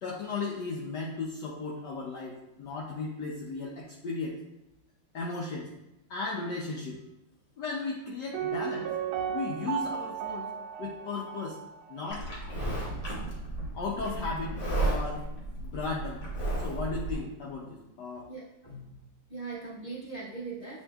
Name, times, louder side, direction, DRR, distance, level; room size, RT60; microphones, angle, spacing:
voice 1, 0.0-4.4 5.1-5.7 6.1-7.0 7.6-8.9 9.3-10.5 10.8-11.6 11.9-12.3 13.7-15.2 15.6-16.2 16.6-18.3, left 3 dB, 75° left, -3 dB, 1.0 m, -35 dB
Piano, 8.3-12.1 12.4-12.5, right 8 dB, 90° right, 1.5 m, -35 dB
Livestock farm animals working animals, 12.1-17.2, right 2 dB, 45° left, 1.1 m, -33 dB
Explosion, 12.6-14.3, right 2 dB, 70° right, 0.7 m, -42 dB
voice 2, 18.3-18.9 19.3-20.8, right 4 dB, 20° right, -9 dB, 1.1 m, -40 dB
8.1 x 2.7 x 2.2 m, 0.89 s
omnidirectional pair, 2.3 m